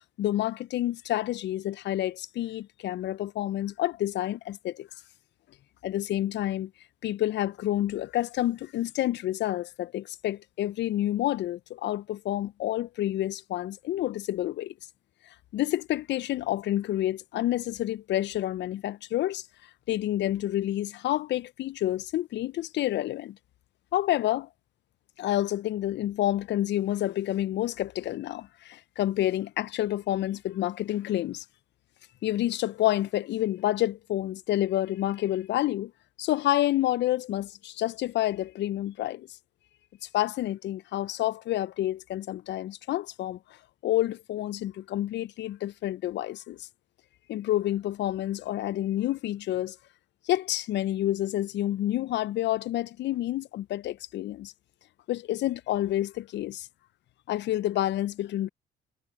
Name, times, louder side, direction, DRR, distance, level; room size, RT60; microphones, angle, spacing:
voice 1, 0.2-4.9 5.8-6.7 7.0-14.7 15.5-23.4 23.9-24.5 25.2-31.4 32.2-35.9 36.2-39.3 40.0-43.6 43.8-46.7 47.3-49.8 50.3-54.5 55.1-56.7 57.3-58.5, left 14 dB, 65° left, 0.4 m, -29 dB
cardioid pair, 90°, 20 cm